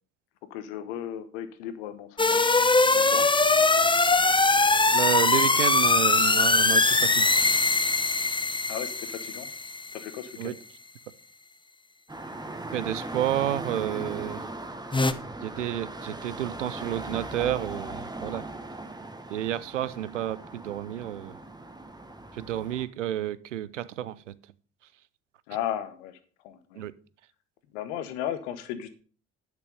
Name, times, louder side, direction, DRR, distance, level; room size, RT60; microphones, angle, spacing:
voice 1, 0.4-2.7 2.9-3.3 8.7-9.5 9.9-10.6 25.5-26.2 26.4-26.8 27.7-28.9, left 11 dB, 75° left, 12 dB, 1.1 m, -35 dB
sound 1, 2.2-10.0 14.9-15.1, left 3 dB, 15° left, 0.9 m, -22 dB
voice 2, 4.9-7.3 10.4-10.5 12.7-14.4 15.4-18.5 19.3-21.4 22.3-24.3 26.8-26.9, right 12 dB, 85° right, 19 dB, 0.5 m, -30 dB
sound 2, 12.1-22.8, right 2 dB, 10° right, 1.5 m, -39 dB
10.5 x 6.1 x 5.3 m, 0.42 s
figure-of-eight pair, 45°, 35 cm